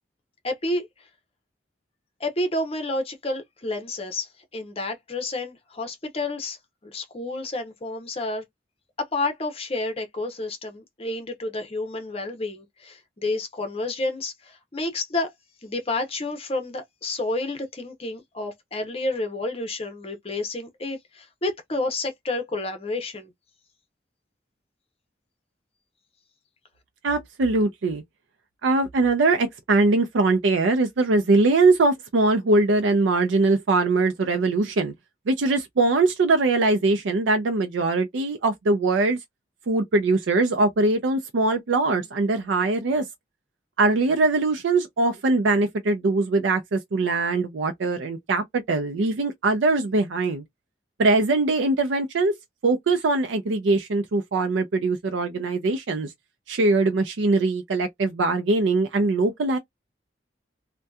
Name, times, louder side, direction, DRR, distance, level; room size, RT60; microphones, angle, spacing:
voice 1, 0.4-0.9 2.2-6.6 6.8-8.4 9.0-15.3 15.6-23.3, left 2 dB, 30° left, 0.6 m, -30 dB
voice 2, 27.0-28.0 28.6-34.9 35.3-39.2 39.7-43.0 43.8-50.4 51.0-52.3 52.6-56.1 56.5-59.6, right 3 dB, 90° right, 0.4 m, -22 dB
2.7 x 2.2 x 2.2 m
head